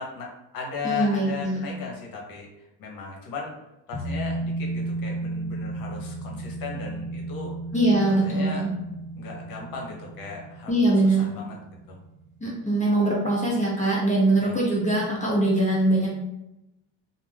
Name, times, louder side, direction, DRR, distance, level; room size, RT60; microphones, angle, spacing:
voice 1, 0.0-2.5 2.8-3.5 3.9-7.5 8.1-8.7 9.2-10.7 11.0-11.6 11.9-12.0 14.4-14.6, left 5 dB, 65° left, -1 dB, 1.0 m, -36 dB
voice 2, 0.8-1.6 7.7-8.7 10.7-11.3 12.4-16.1, right 1 dB, 20° left, -5 dB, 0.8 m, -22 dB
sound 1, 3.9-13.0 13.3-13.4, right 2 dB, 70° right, 0.8 m, -34 dB
2.5 x 2.2 x 3.3 m, 0.90 s
cardioid pair, 105°, 37 cm